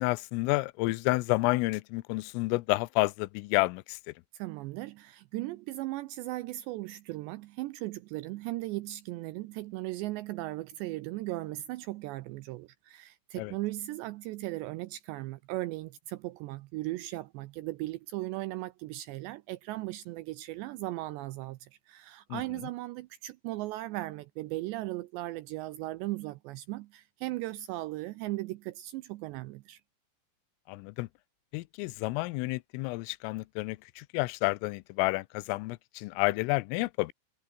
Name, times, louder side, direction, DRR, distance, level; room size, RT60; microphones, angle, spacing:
voice 1, 0.0-4.1 13.4-13.5 22.3-22.4 30.7-31.1 31.5-37.1, left 22 dB, 90° left, 3.3 m, -30 dB
voice 2, 4.3-29.8, right 18 dB, 80° right, 2.5 m, -37 dB
omnidirectional pair, 5.7 m